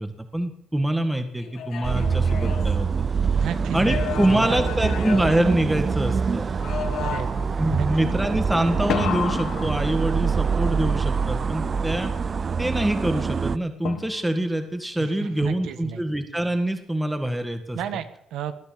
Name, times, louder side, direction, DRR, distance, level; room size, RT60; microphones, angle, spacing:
voice 1, 0.0-2.9 3.4-3.5 3.7-6.5 7.6-12.1 12.6-17.8, right 1 dB, 10° right, 7 dB, 1.7 m, -25 dB
sound 1, 1.4-3.3 3.7-6.1 6.6-7.6 8.9-10.5 13.8-14.5, left 8 dB, 75° left, 1.5 m, -32 dB
sound 2, 1.8-13.6, right 5 dB, 40° right, 0.6 m, -25 dB
voice 2, 3.3-4.0 4.3-4.6 7.0-7.9 15.0-16.0 17.7-18.5, right 9 dB, 85° right, 11 dB, 1.4 m, -33 dB
20.0 x 9.6 x 7.6 m, 0.70 s
cardioid pair, 90°, 0 cm